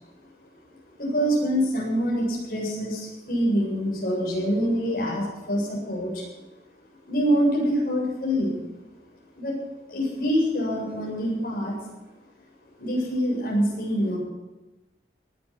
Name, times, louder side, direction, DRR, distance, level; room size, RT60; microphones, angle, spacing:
voice 1, 1.0-6.3 7.1-8.6 9.3-9.5 9.9-11.7 12.8-14.2, equal, 55° left, -3 dB, 7.9 m, -25 dB
19.0 x 11.5 x 6.3 m, 1.1 s
head